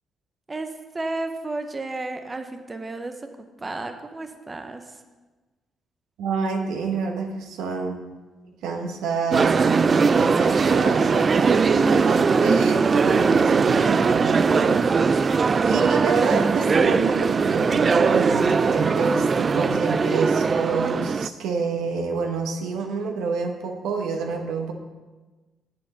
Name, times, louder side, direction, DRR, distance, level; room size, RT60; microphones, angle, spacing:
voice 1, 0.5-5.0, right 2 dB, 25° right, 6 dB, 0.8 m, -33 dB
voice 2, 6.2-8.0 8.6-15.3 15.6-24.7, right 4 dB, 90° right, 3 dB, 1.2 m, -27 dB
sound 1, 9.3-21.3, right 5 dB, 40° right, 0.3 m, -20 dB
7.8 x 7.3 x 6.0 m, 1.2 s
cardioid pair, 90°, 0 cm